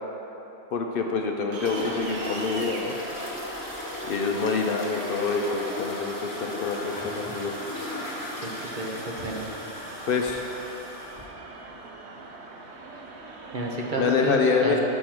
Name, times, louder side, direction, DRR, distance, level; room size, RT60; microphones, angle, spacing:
voice 1, 0.7-2.9 4.1-7.6 10.1-10.5 14.0-14.8, left 5 dB, 65° left, 2 dB, 0.7 m, -26 dB
sound 1, 1.5-14.1, right 3 dB, 80° right, 1.0 m, -41 dB
sound 2, 1.6-11.2, left 1 dB, 20° left, 0.9 m, -36 dB
voice 2, 8.4-9.5 13.5-14.8, right 2 dB, 50° right, -1 dB, 0.9 m, -31 dB
6.3 x 4.9 x 5.9 m, 3.0 s
omnidirectional pair, 1.1 m